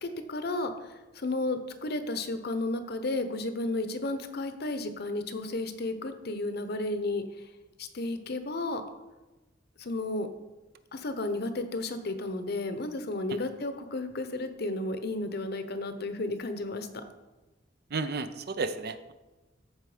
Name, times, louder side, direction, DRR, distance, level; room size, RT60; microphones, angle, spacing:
voice 1, 0.0-7.2 7.8-8.8 9.8-10.3 10.9-17.0, left 2 dB, 60° left, 9 dB, 0.9 m, -33 dB
voice 2, 17.9-19.1, right 4 dB, 60° right, 11 dB, 0.6 m, -32 dB
14.0 x 4.6 x 5.0 m, 1.1 s
head